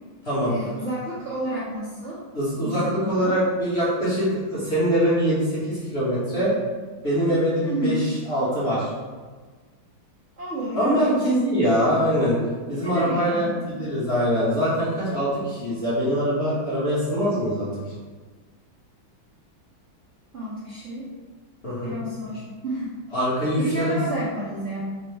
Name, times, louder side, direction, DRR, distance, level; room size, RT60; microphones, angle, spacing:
voice 1, 0.4-2.2 2.6-3.4 7.6-8.1 10.4-11.1 12.6-13.9 20.3-21.1 21.8-23.0 23.5-24.8, right 1 dB, 65° right, -8 dB, 0.7 m, -31 dB
voice 2, 2.3-6.6 7.0-8.9 10.7-12.4 12.7-17.7 21.6-21.9 23.1-24.0, equal, 40° left, -11 dB, 1.0 m, -23 dB
3.6 x 2.1 x 4.3 m, 1.4 s
omnidirectional pair, 2.3 m